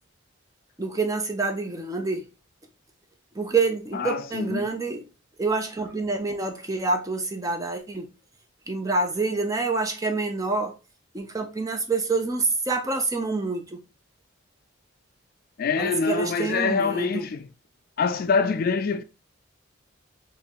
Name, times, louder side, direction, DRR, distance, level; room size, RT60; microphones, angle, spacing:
voice 1, 0.8-2.2 3.3-5.1 5.4-8.1 8.7-10.7 11.1-13.8 15.8-17.3, right 3 dB, 15° right, 0.5 m, -27 dB
voice 2, 3.9-4.7 15.6-17.4 18.0-19.0, left 5 dB, 45° left, 0.3 m, -25 dB
4.2 x 3.1 x 2.9 m
head